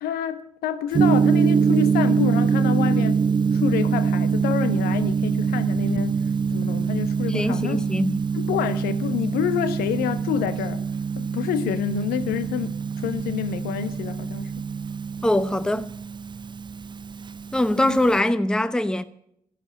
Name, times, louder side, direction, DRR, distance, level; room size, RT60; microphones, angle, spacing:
voice 1, 0.0-3.2 3.5-6.2 6.5-7.8 8.3-10.8 11.2-14.5 17.8-18.0, left 10 dB, 60° left, 1.0 m, -28 dB
Gong, 0.9-18.2, right 6 dB, 25° right, 0.6 m, -24 dB
voice 2, 7.3-8.2 15.2-15.9 17.5-19.0, left 1 dB, 5° left, 0.8 m, -22 dB
14.0 x 11.5 x 8.7 m
figure-of-eight pair, 40°, 17 cm